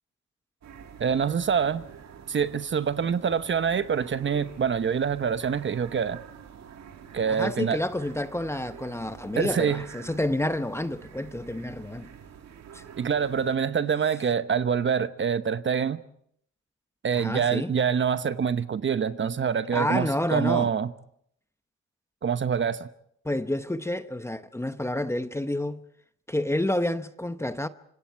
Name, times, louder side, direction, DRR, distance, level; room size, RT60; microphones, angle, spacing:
sound 1, 0.6-13.6, right 7 dB, 60° right, 2.1 m, -47 dB
voice 1, 1.0-1.8 2.3-6.2 7.1-7.8 9.3-9.8 13.0-16.0 17.0-20.9 22.2-22.9, right 7 dB, 40° right, 1.0 m, -25 dB
voice 2, 7.3-12.1 12.7-12.8 17.1-17.7 19.7-20.7 23.2-25.8 26.3-27.7, left 1 dB, 10° left, 0.9 m, -29 dB
26.0 x 25.0 x 4.6 m
cardioid pair, 90°, 30 cm